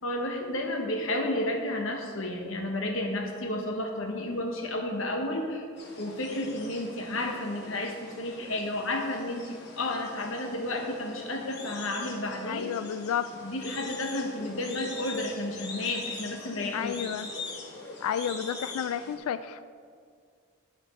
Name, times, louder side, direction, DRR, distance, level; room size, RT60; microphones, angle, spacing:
voice 1, 0.0-5.7 6.0-12.7 13.3-17.0, left 1 dB, 65° left, 2 dB, 1.2 m, -32 dB
sound 1, 5.8-19.2, left 3 dB, 50° left, 1.3 m, -43 dB
voice 2, 12.4-13.3 16.7-17.3 18.0-19.7, left 8 dB, 85° left, 13 dB, 0.3 m, -31 dB
11.5 x 5.1 x 4.4 m, 2.1 s
head